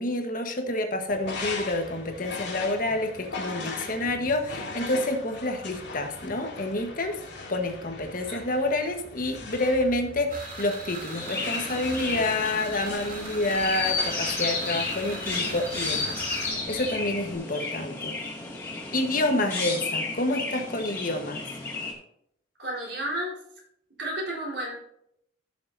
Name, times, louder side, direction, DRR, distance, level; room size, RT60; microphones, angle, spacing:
voice 1, 0.0-7.2 7.5-18.2 18.9-21.4, left 2 dB, 50° left, 4 dB, 1.4 m, -28 dB
sound 1, 1.1-17.3, left 3 dB, 75° left, 3.1 m, -40 dB
sound 2, 10.3-16.5, right 2 dB, 45° right, 3.3 m, -40 dB
Chirp tweet, 11.1-21.9, left 3 dB, 10° left, 2.5 m, -32 dB
voice 2, 22.6-23.4 24.0-24.8, right 1 dB, 70° right, -3 dB, 4.4 m, -32 dB
15.5 x 6.8 x 2.8 m, 0.73 s
head